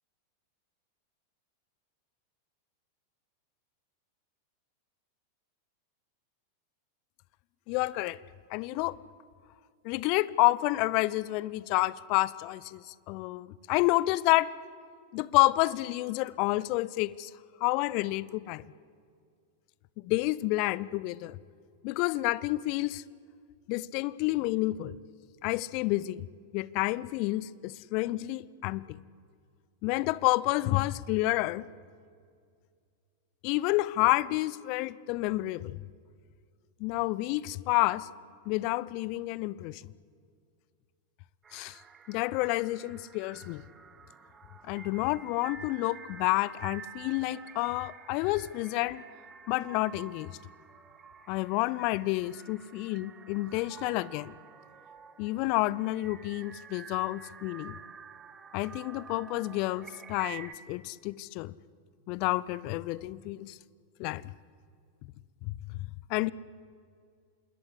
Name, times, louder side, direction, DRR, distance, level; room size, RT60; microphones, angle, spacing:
voice 1, 7.7-8.2 8.5-9.0 9.8-14.5 15.1-17.3 17.6-18.7 20.0-21.4 21.8-23.0 23.7-25.0 25.4-26.3 26.5-29.0 29.8-31.7 33.4-35.8 36.8-38.1 38.5-39.8 41.5-41.8 42.1-43.6 44.7-49.0 49.5-50.4 51.3-54.3 55.2-57.8 58.5-61.5 62.1-63.6 64.0-64.3 65.4-66.3, left 19 dB, 45° left, 0.7 m, -29 dB
sound 1, 41.4-60.6, right 6 dB, 20° right, 1.6 m, -49 dB
27.0 x 20.5 x 9.9 m
figure-of-eight pair, 90°, 0 cm